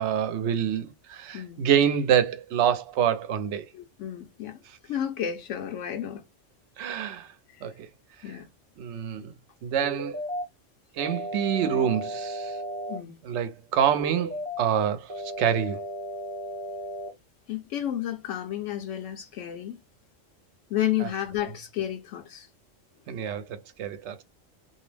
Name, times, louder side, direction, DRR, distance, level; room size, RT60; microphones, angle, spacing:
voice 1, 0.0-3.7 6.8-7.3 7.6-7.9 8.8-9.3 9.6-10.2 11.0-12.6 13.2-15.8 23.1-24.2, right 9 dB, 70° right, 0.8 m, -26 dB
voice 2, 1.3-1.6 3.7-6.2 7.5-7.7 8.2-8.5 12.9-13.2 17.5-19.8 20.7-22.5, left 11 dB, 75° left, 0.9 m, -32 dB
sound 1, 9.8-10.4 11.0-13.0 14.0-14.6 15.1-17.1, right 1 dB, 25° right, 0.6 m, -34 dB
2.6 x 2.0 x 3.1 m
omnidirectional pair, 1.3 m